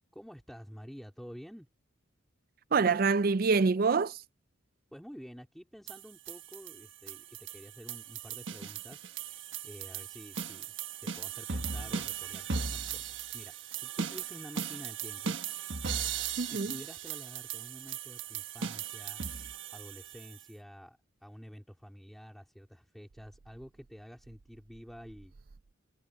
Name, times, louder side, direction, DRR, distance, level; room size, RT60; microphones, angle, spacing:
voice 1, 0.1-1.7 4.9-10.7 11.0-15.4 16.5-25.3, equal, ahead, 3.9 m, -50 dB
voice 2, 2.7-4.2 16.4-16.8, right 4 dB, 45° right, 0.4 m, -26 dB
sound 1, 5.9-20.4, right 6 dB, 70° right, 1.4 m, -38 dB
head